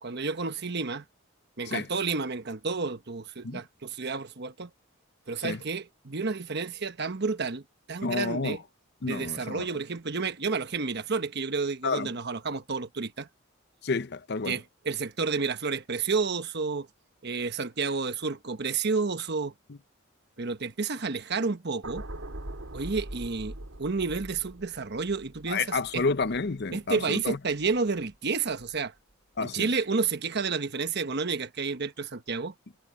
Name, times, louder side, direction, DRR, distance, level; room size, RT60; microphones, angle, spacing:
voice 1, 0.0-1.0 1.6-4.7 5.3-7.6 7.9-8.6 9.0-13.3 14.4-16.9 17.2-19.5 20.4-22.0 22.7-26.0 26.7-28.9 29.4-32.5, right 4 dB, 55° right, 1.1 m, -30 dB
voice 2, 8.0-8.6 9.0-9.7 11.8-12.1 13.8-14.6 25.5-27.4 29.4-29.7, left 4 dB, 55° left, 0.7 m, -30 dB
sound 1, 21.8-28.1 28.5-28.8, right 1 dB, 80° right, 2.6 m, -43 dB
head